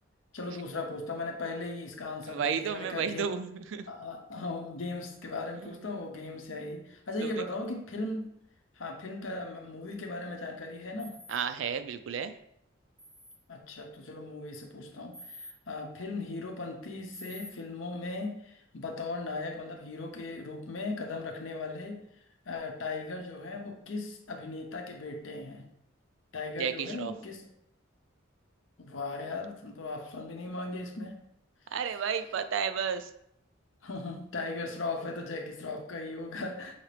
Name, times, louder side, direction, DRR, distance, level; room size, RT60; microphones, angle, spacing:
voice 1, 0.3-3.3 3.9-8.3 8.8-11.2 13.5-22.0 22.5-25.7 26.3-27.4 28.8-31.2 33.8-36.7, left 2 dB, 80° left, 3 dB, 0.8 m, -38 dB
voice 2, 2.3-3.9 5.6-5.7 7.2-7.3 11.3-12.3 26.6-27.1 31.7-33.1, right 7 dB, 75° right, 10 dB, 0.4 m, -32 dB
sound 1, 11.0-11.4 13.0-13.4 15.1-15.5 17.1-17.5, equal, 10° right, 0.9 m, -47 dB
5.8 x 2.8 x 3.3 m, 0.76 s
head